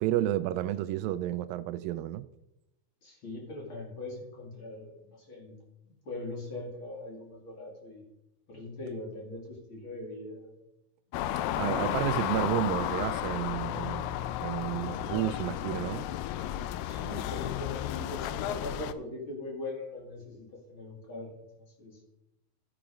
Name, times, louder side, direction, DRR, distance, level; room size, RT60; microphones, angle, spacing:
voice 1, 0.0-2.2 11.6-16.1, right 13 dB, 85° right, 2.0 m, -31 dB
voice 2, 3.0-5.6 5.8-8.0 8.5-10.5 11.2-12.3 16.8-22.0, left 2 dB, 35° left, 2.6 m, -41 dB
sound 1, 11.1-18.9, left 12 dB, 85° left, 2.1 m, -33 dB
13.0 x 6.0 x 5.0 m
omnidirectional pair, 4.5 m